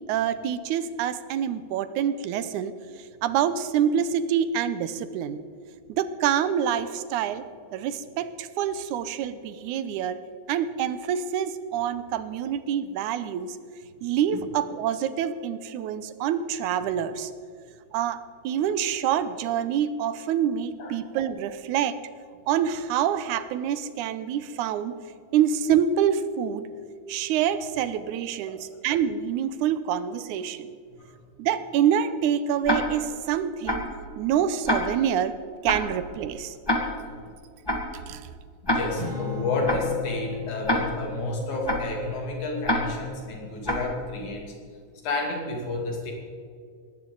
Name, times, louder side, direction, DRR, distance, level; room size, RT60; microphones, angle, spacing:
voice 1, 0.1-2.7 3.2-5.4 5.9-7.4 7.7-10.2 10.5-13.6 14.0-17.3 17.9-22.0 22.5-25.0 25.3-26.6 27.1-30.7 31.4-33.9 34.2-35.3 35.6-36.6 38.1-38.3, right 9 dB, 85° right, 13 dB, 2.2 m, -26 dB
Tick-tock, 32.6-33.1 33.7-34.0 34.7-35.1 35.7-36.0 36.7-37.1 37.7-38.0 38.7-39.1 39.7-40.0 40.7-41.1 41.7-42.0 42.6-43.1 43.6-44.0, left 1 dB, 15° left, 0.7 m, -27 dB
voice 2, 38.6-44.4 45.0-46.1, left 2 dB, 75° left, 0 dB, 4.0 m, -30 dB
Acoustic guitar / Strum, 38.9-43.4, left 7 dB, 30° right, 4.9 m, -37 dB
18.5 x 15.0 x 3.9 m, 2.2 s
omnidirectional pair, 3.4 m